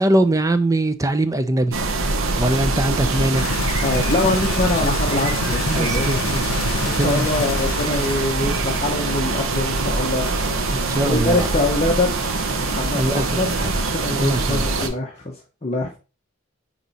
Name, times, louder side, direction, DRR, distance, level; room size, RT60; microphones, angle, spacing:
voice 1, 0.0-1.8 2.4-3.5 5.7-6.5 7.0-7.3 7.6-7.7 10.7-11.5 12.9-13.8 14.2-14.9, right 1 dB, 15° right, 0.5 m, -22 dB
sound 1, 1.7-14.9, right 3 dB, 80° right, 0.9 m, -23 dB
sound 2, 3.4-8.3 8.7-8.8, left 8 dB, 70° left, 0.3 m, -30 dB
voice 2, 3.6-6.1 6.8-10.4 11.0-12.1 12.6-16.0, left 2 dB, 30° left, 0.9 m, -24 dB
sound 3, 5.6-13.8, right 3 dB, 45° right, 1.5 m, -41 dB
9.3 x 3.1 x 4.1 m
head